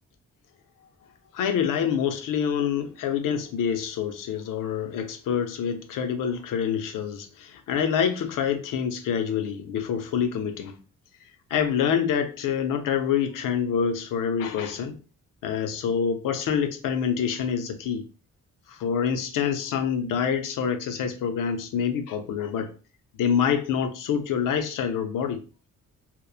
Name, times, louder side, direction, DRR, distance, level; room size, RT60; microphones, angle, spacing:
voice 1, 1.3-10.7 11.5-15.0 15.4-18.0 18.7-22.7 23.2-25.4, left 7 dB, 85° left, 0.5 m, -26 dB
2.9 x 2.0 x 2.3 m
wide cardioid pair, 175°, 31 cm